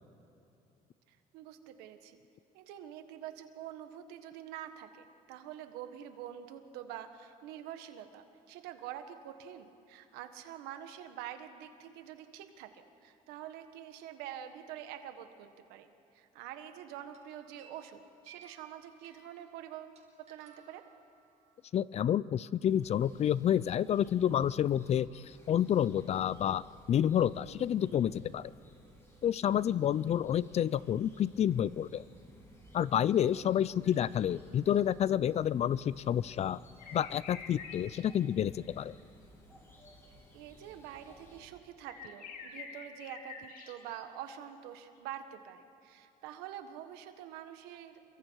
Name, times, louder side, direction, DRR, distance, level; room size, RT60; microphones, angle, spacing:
voice 1, 1.1-2.2 2.5-15.9 16.1-20.8 33.3-33.5 40.3-48.2, right 10 dB, 90° right, 8 dB, 1.6 m, -46 dB
sound 1, 16.5-16.8 17.1-21.5, right 6 dB, 45° right, 5.0 m, -60 dB
voice 2, 21.7-28.5 29.2-32.0 32.7-36.6 36.9-38.9, left 10 dB, 40° left, 20 dB, 0.5 m, -29 dB
sound 2, 22.7-41.5, equal, 15° left, 6.1 m, -59 dB
sound 3, 33.8-34.1 36.8-38.0 38.4-39.0 41.9-44.0, left 6 dB, 60° left, 2.8 m, -47 dB
28.5 x 23.0 x 4.7 m, 2.8 s
cardioid pair, 105°, 16 cm